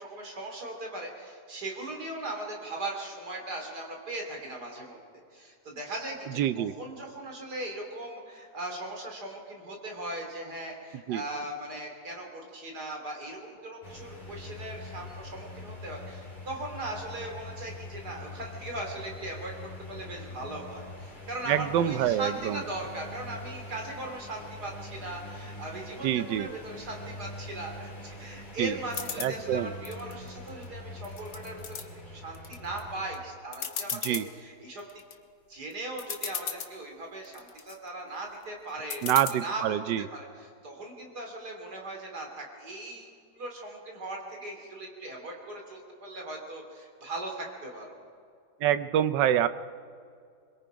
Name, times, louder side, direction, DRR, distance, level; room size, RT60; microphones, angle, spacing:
voice 1, 0.0-5.0 5.3-34.8 35.5-39.1 39.4-39.8 40.1-47.9, right 2 dB, 60° right, 1 dB, 3.7 m, -39 dB
voice 2, 6.3-6.7 11.1-11.2 21.5-22.6 26.0-26.5 28.6-28.8 29.2-29.7 33.9-34.3 39.0-40.1 48.6-49.5, right 11 dB, 80° right, 13 dB, 1.3 m, -26 dB
sound 1, 13.8-33.1, left 2 dB, 25° left, 3.2 m, -44 dB
sound 2, 28.9-29.3 29.9-30.6 31.0-31.8 32.4-32.8 33.1-33.2 33.5-34.3 34.8-35.1 35.7-35.8 36.0-36.7 37.3-37.8 38.9-39.3, left 7 dB, 70° left, 1.9 m, -36 dB
24.0 x 22.5 x 5.1 m, 2.3 s
omnidirectional pair, 1.9 m